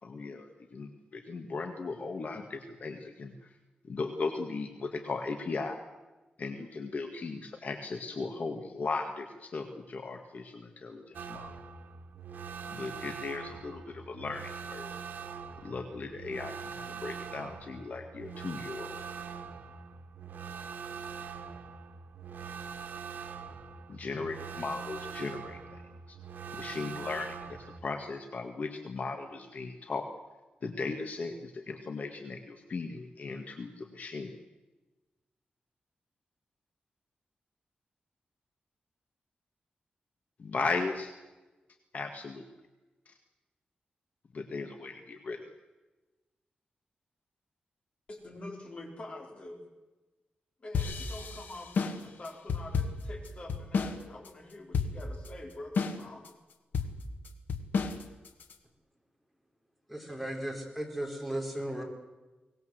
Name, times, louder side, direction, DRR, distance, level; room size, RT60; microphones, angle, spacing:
voice 1, 0.0-3.5 3.8-5.8 6.4-11.5 12.7-14.9 15.6-19.0 23.9-25.8 26.1-26.2 26.6-30.0 30.6-34.3 40.4-41.1 41.9-42.5 43.1-43.2 44.3-45.5, left 4 dB, 55° left, 5 dB, 1.9 m, -37 dB
sound 1, 11.1-27.8, right 6 dB, 85° right, 1.8 m, -43 dB
voice 2, 48.1-49.6 50.6-56.3 56.8-56.9, left 2 dB, 40° left, 3 dB, 4.5 m, -45 dB
sound 2, 50.7-54.0 54.3-54.4 54.7-55.3 55.8-56.3 56.7-58.5, left 5 dB, 75° left, 2.0 m, -32 dB
voice 3, 59.9-61.8, right 1 dB, ahead, 2 dB, 4.7 m, -36 dB
23.5 x 19.5 x 8.0 m, 1.1 s
wide cardioid pair, 150°, 3 cm